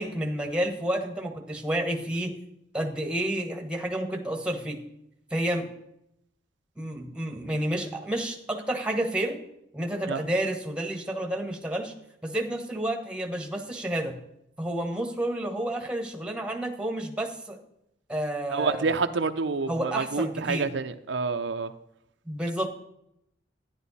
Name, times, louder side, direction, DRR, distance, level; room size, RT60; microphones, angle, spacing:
voice 1, 0.0-2.4 2.7-4.8 5.3-5.7 6.8-9.4 9.7-11.9 12.2-14.2 14.6-17.6 18.1-18.9 19.7-20.7 22.3-22.7, right 1 dB, 5° right, 4 dB, 1.3 m, -30 dB
voice 2, 18.5-21.7, right 4 dB, 75° right, 8 dB, 0.6 m, -28 dB
11.0 x 10.5 x 4.2 m, 0.79 s
head